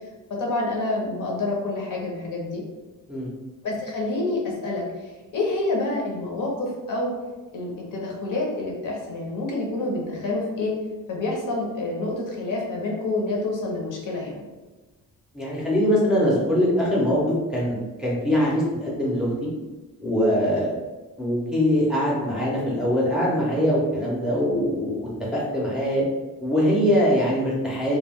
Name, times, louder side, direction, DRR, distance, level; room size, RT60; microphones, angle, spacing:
voice 1, 0.3-2.6 3.6-7.1 7.5-10.8 11.1-14.4, left 2 dB, 65° left, -1 dB, 0.8 m, -28 dB
voice 2, 15.3-19.3 20.0-20.7 21.2-26.0 26.4-28.0, equal, ahead, -7 dB, 0.6 m, -22 dB
2.3 x 2.2 x 3.4 m, 1.2 s
cardioid pair, 145°, 34 cm